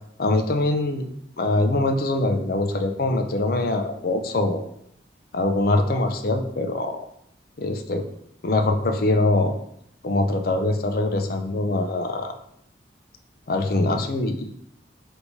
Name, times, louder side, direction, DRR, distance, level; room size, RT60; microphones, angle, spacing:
voice 1, 0.2-1.0 1.4-4.7 5.3-7.0 7.6-8.1 8.4-9.6 10.0-12.3 13.5-14.5, left 2 dB, 50° left, 6 dB, 0.5 m, -23 dB
4.5 x 3.4 x 2.7 m, 0.72 s
head